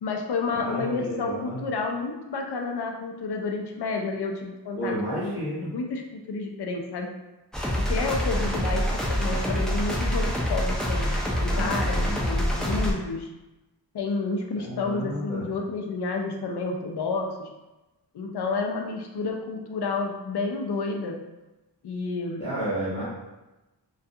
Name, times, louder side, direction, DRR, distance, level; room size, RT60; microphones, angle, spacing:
voice 1, 0.0-4.9 5.2-5.3 5.7-7.1 7.9-8.8 9.2-11.1 11.4-13.3 13.9-17.5 18.1-21.2 21.8-22.4, left 3 dB, 65° left, 2 dB, 0.5 m, -30 dB
voice 2, 0.5-1.6 4.8-5.7 11.5-12.2 14.6-15.5 22.4-23.0, right 1 dB, 30° left, -8 dB, 0.9 m, -31 dB
sound 1, 7.5-12.9, equal, ahead, 0.4 m, -26 dB
2.3 x 2.3 x 2.7 m, 1.0 s
wide cardioid pair, 85°, 44 cm